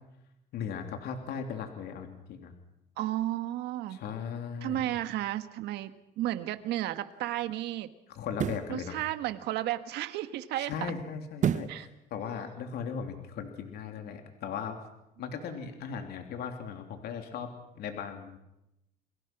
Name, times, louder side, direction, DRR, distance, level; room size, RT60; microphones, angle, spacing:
voice 1, 0.5-2.5 3.9-4.9 8.1-9.0 10.6-14.8 15.2-17.5 17.7-18.4, left 7 dB, 75° left, 5 dB, 3.1 m, -38 dB
voice 2, 3.0-4.0 4.6-7.9 8.7-10.9 11.7-11.9 15.5-15.8, right 14 dB, 80° right, 10 dB, 1.5 m, -33 dB
sound 1, 6.4-6.6 8.3-8.8 11.4-11.8 12.3-12.4, right 9 dB, 45° right, 0.8 m, -29 dB
29.5 x 21.5 x 6.0 m, 0.88 s
cardioid pair, 110°, 17 cm